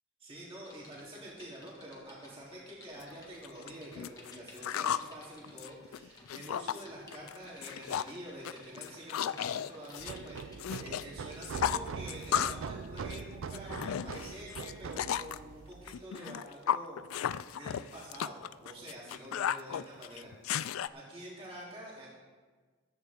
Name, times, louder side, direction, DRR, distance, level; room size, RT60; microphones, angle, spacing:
voice 1, 0.2-20.3 20.6-22.1, right 1 dB, 30° right, -7 dB, 3.4 m, -47 dB
Typing, 0.6-11.4 11.9-12.1, left 2 dB, 20° left, 1.8 m, -57 dB
sound 1, 3.0-3.1 3.4-5.1 5.4-6.8 7.1-7.4 7.6-8.2 8.5-11.0 11.3-12.7 13.0-15.4 15.9-20.9, left 9 dB, 90° left, 0.3 m, -34 dB
sound 2, 10.0-16.0, right 5 dB, 70° right, 0.4 m, -42 dB
14.5 x 12.5 x 3.7 m, 1.4 s
head